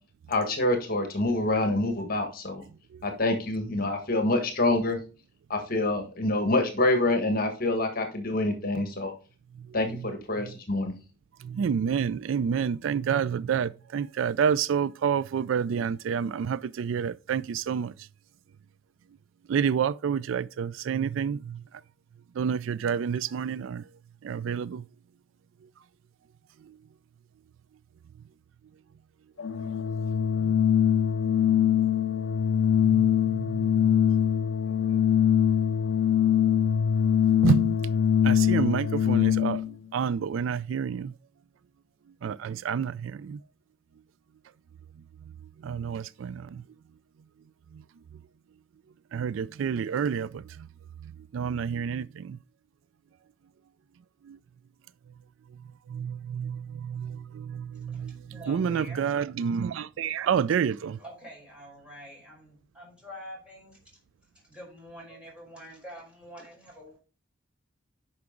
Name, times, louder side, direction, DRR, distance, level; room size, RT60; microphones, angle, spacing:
voice 1, 0.3-2.6 3.0-5.0 5.5-9.1 9.7-10.9, left 2 dB, 45° left, 1.5 m, -26 dB
voice 2, 11.6-17.9 19.5-21.4 22.4-23.8 24.2-24.8 37.4-37.6 38.2-39.6 39.9-41.1 42.2-43.4 45.6-46.4 49.1-50.3 51.3-52.1 55.9-56.6 56.9-57.1 57.8-58.1 58.5-61.0, right 7 dB, 75° right, 0.3 m, -28 dB
Organ, 29.4-39.7, left 8 dB, 65° left, 0.5 m, -23 dB
voice 3, 57.9-59.0 59.9-60.1 60.4-60.6 61.0-63.8 64.3-67.0, equal, 5° right, 5.2 m, -46 dB
9.5 x 5.8 x 3.8 m
head